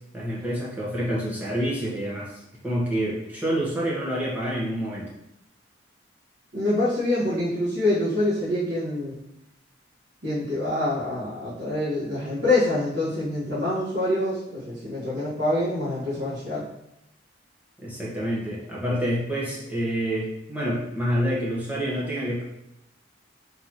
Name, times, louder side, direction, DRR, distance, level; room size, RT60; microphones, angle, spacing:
voice 1, 0.1-2.3 2.6-5.1 17.8-22.4, equal, 10° right, -6 dB, 1.2 m, -27 dB
voice 2, 6.5-9.2 10.2-16.6, left 1 dB, 65° right, -12 dB, 1.5 m, -25 dB
4.1 x 3.6 x 3.0 m, 0.84 s
head